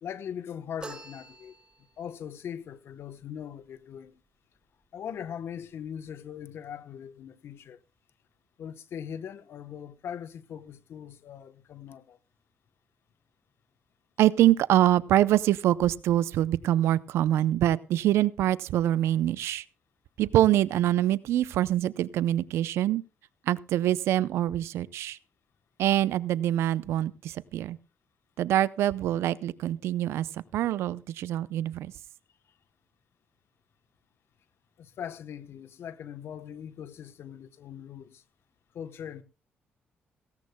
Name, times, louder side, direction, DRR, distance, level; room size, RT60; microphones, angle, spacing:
voice 1, 0.0-4.2 4.9-7.8 8.6-12.2 34.8-38.2 38.7-39.2, left 8 dB, 70° left, 1.0 m, -40 dB
sound 1, 0.8-2.1, right 2 dB, 20° right, 3.1 m, -45 dB
voice 2, 14.2-19.6 20.2-23.0 23.5-25.2 25.8-27.8 28.4-31.9, right 13 dB, 85° right, 0.5 m, -25 dB
18.0 x 17.0 x 2.2 m
cardioid pair, 70°, 4 cm